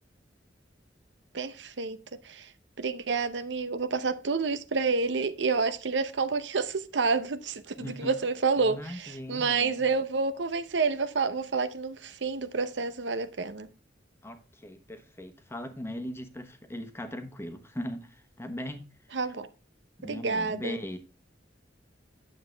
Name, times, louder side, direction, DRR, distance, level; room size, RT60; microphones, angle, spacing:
voice 1, 1.3-2.0 2.3-2.5 2.8-13.7 19.1-19.5 20.0-20.8, right 4 dB, 75° right, 0.7 m, -29 dB
voice 2, 7.8-8.2 8.6-9.9 14.2-18.9 20.0-21.0, left 1 dB, 15° left, 1.1 m, -39 dB
9.3 x 7.6 x 3.3 m
head